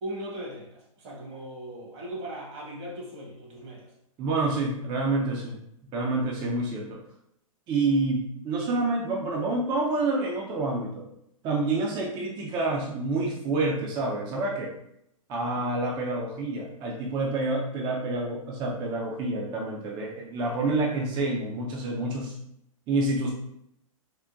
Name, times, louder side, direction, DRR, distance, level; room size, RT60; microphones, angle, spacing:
voice 1, 0.0-3.9 15.4-15.6, right 1 dB, 55° right, -3 dB, 1.2 m, -39 dB
voice 2, 4.2-5.6 5.9-7.0 7.7-11.1 11.4-14.7 15.3-22.3 22.9-23.3, right 2 dB, 25° right, -2 dB, 0.5 m, -28 dB
3.6 x 2.1 x 2.5 m, 0.77 s
hypercardioid pair, 130°, 18 cm